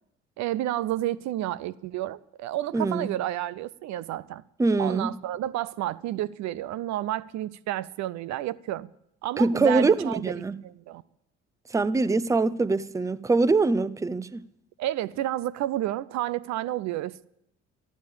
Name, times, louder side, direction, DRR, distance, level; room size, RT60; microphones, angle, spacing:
voice 1, 0.4-4.4 4.8-8.9 9.2-11.0 14.8-17.3, right 13 dB, 50° right, 0.6 m, -30 dB
voice 2, 2.7-3.1 4.6-5.2 9.4-10.6 11.7-14.5, right 3 dB, 10° right, 0.6 m, -24 dB
13.0 x 12.5 x 8.5 m
hypercardioid pair, 55°, 36 cm